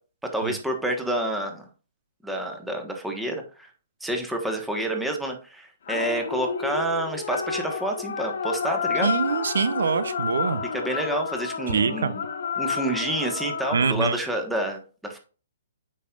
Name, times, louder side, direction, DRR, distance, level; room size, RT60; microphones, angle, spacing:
voice 1, 0.3-1.6 2.2-3.7 4.0-9.1 10.7-12.2 12.6-15.2, right 1 dB, 5° right, 2 dB, 1.4 m, -28 dB
sound 1, 5.9-13.9, left 6 dB, 65° left, 1.2 m, -30 dB
voice 2, 9.0-10.6 11.7-12.1 13.7-14.2, right 5 dB, 75° right, 12 dB, 0.6 m, -24 dB
8.2 x 5.5 x 2.5 m, 0.36 s
hypercardioid pair, 140°, 0 cm